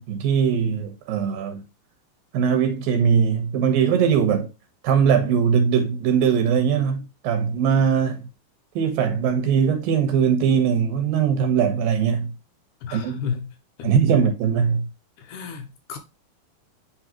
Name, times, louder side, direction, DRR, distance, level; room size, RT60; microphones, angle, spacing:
voice 1, 0.0-1.6 2.3-4.5 4.8-8.3 8.8-12.3 12.9-13.2 13.8-14.9, right 7 dB, 75° right, 3.0 m, -21 dB
voice 2, 12.8-13.5 13.8-13.9 15.2-16.0, left 6 dB, 70° left, 2.2 m, -32 dB
9.6 x 3.3 x 2.9 m
omnidirectional pair, 4.1 m